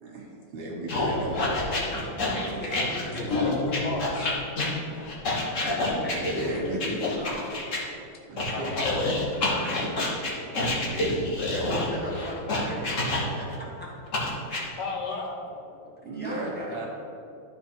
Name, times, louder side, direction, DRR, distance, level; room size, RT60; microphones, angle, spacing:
voice 1, 0.0-1.6 2.4-2.5 5.0-5.6 5.8-7.3 8.3-8.7 9.3-9.9 10.3-10.9 11.4-12.1 16.0-16.9, right 1 dB, 65° right, -2 dB, 2.2 m, -36 dB
sound 1, 0.9-7.8 8.4-13.5 14.1-14.6, left 2 dB, 40° left, 1.4 m, -28 dB
voice 2, 1.7-3.6 6.0-7.3 9.5-9.8 10.3-11.2 11.5-13.1 13.4-13.5 13.8-13.9 15.5-16.9, equal, 5° left, -5 dB, 1.2 m, -39 dB
voice 3, 3.2-4.4 8.5-8.9 14.8-15.4, left 3 dB, 90° left, 0 dB, 2.1 m, -32 dB
12.0 x 4.3 x 4.5 m, 2.7 s
omnidirectional pair, 2.3 m